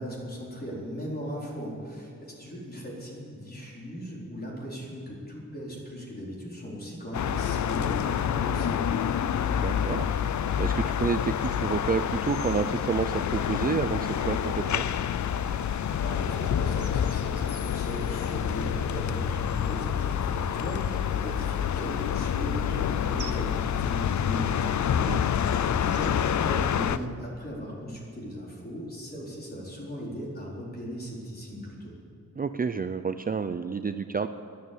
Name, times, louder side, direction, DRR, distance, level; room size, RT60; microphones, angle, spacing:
voice 1, 0.0-9.1 16.0-24.8 25.4-31.9, equal, 30° left, -4 dB, 4.3 m, -38 dB
sound 1, 7.1-27.0, left 9 dB, 75° left, 0.5 m, -28 dB
sound 2, 9.3-27.1, right 6 dB, 85° right, 1.1 m, -50 dB
voice 2, 9.5-10.1 10.6-14.9 24.9-25.2 32.4-34.3, right 5 dB, 30° right, 10 dB, 0.4 m, -29 dB
12.5 x 11.5 x 8.5 m, 2.6 s
wide cardioid pair, 135°, 29 cm